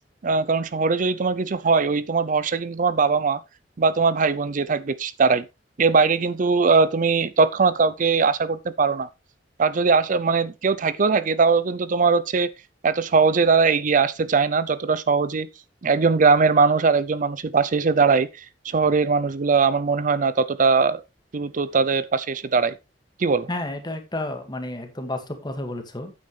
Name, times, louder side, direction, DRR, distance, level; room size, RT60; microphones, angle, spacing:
voice 1, 0.2-3.4 3.8-5.5 5.8-9.1 9.6-12.5 12.8-15.5 15.8-21.0 21.3-22.7 23.2-23.5, right 4 dB, 45° right, 0.5 m, -20 dB
voice 2, 23.5-26.1, left 1 dB, 25° left, 2.0 m, -31 dB
9.3 x 8.7 x 3.3 m
head